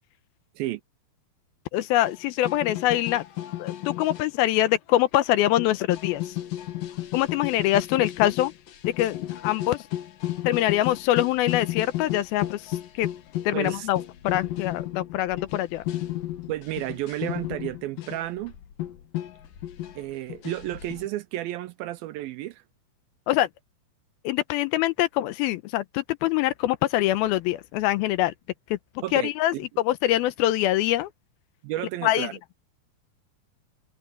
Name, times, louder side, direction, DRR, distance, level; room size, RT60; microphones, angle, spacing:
voice 1, 1.7-3.2 3.6-6.2 7.1-8.5 9.0-9.8 10.5-12.6 13.0-13.1 13.5-14.0 14.2-15.8 23.3-23.5 24.2-28.3 28.7-28.8 29.1-31.1 32.0-32.3, left 14 dB, 80° left, 2.4 m, -24 dB
sound 1, 2.1-2.2 2.4-4.3 4.7-4.8 5.0-5.1 5.3-21.1, left 14 dB, 65° left, 3.0 m, -33 dB
voice 2, 13.5-13.9 16.5-18.5 20.0-22.6 29.0-29.6 31.6-32.3, right 15 dB, 80° right, 2.2 m, -32 dB
omnidirectional pair, 4.6 m